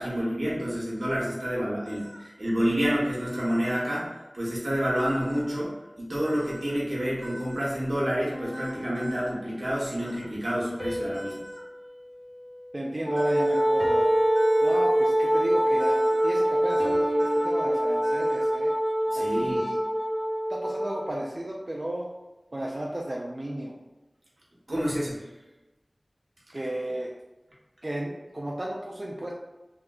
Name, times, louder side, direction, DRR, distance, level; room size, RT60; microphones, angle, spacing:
voice 1, 0.0-4.1 4.3-11.3 19.1-19.6 24.7-25.3, equal, 85° right, -6 dB, 1.0 m, -28 dB
Store Pet Section Squeaky toy, 1.9-2.2 3.3-3.9 5.0-5.5 6.2-6.8 7.2-7.7 8.5-9.3 10.1-10.3 11.1-11.6 13.2-13.6 14.4-14.8 15.8-16.3 16.7-16.9 17.2-17.5 18.0-18.5, equal, 10° right, 0.8 m, -43 dB
sound 1, 8.3-9.8 10.8-13.3 13.8-15.4 16.8-18.5, equal, 35° left, 0.8 m, -36 dB
voice 2, 12.7-14.1 14.6-18.7 19.1-19.8 20.5-22.1 22.5-23.7 26.5-27.1 27.8-29.3, right 1 dB, 50° right, -3 dB, 0.4 m, -34 dB
Wind instrument woodwind instrument, 13.0-21.0, right 1 dB, 80° left, 0.8 m, -24 dB
3.4 x 2.6 x 2.4 m, 1.1 s
wide cardioid pair, 50°, 0 cm